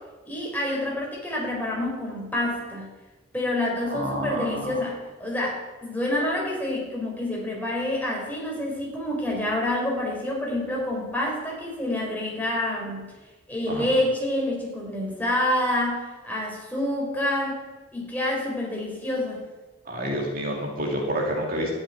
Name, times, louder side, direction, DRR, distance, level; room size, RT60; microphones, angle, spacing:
voice 1, 0.2-2.9 3.3-13.1 13.5-17.6 17.9-19.4, left 1 dB, 10° left, -2 dB, 4.2 m, -27 dB
voice 2, 3.9-4.8 13.7-13.9 19.9-21.7, equal, 45° right, -1 dB, 2.7 m, -29 dB
13.0 x 7.5 x 9.9 m, 1.2 s
head